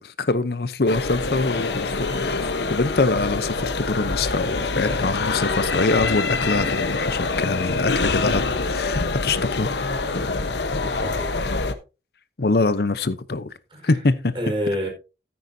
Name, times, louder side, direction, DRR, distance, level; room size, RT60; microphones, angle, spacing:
voice 1, 0.0-2.4 2.7-9.8 12.4-13.5 13.8-14.3, left 3 dB, 60° left, 0.7 m, -24 dB
sound 1, 0.9-11.7, left 3 dB, 75° left, 1.1 m, -25 dB
voice 2, 10.7-11.3 13.7-13.9 14.3-14.9, equal, 30° right, 4.6 m, -28 dB
13.5 x 9.6 x 2.7 m
head